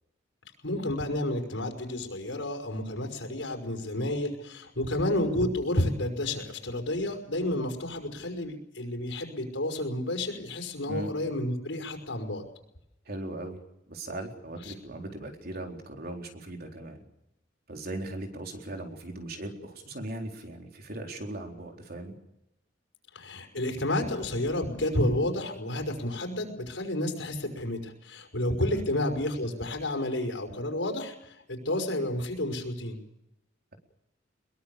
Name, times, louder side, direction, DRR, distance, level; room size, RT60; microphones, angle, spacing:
voice 1, 0.6-12.4 23.1-33.0, left 1 dB, 85° left, 4 dB, 5.5 m, -30 dB
voice 2, 13.1-13.6 13.9-17.0 17.7-22.1 28.6-28.8, right 1 dB, 55° right, 2 dB, 4.1 m, -38 dB
22.5 x 22.0 x 7.0 m, 0.88 s
head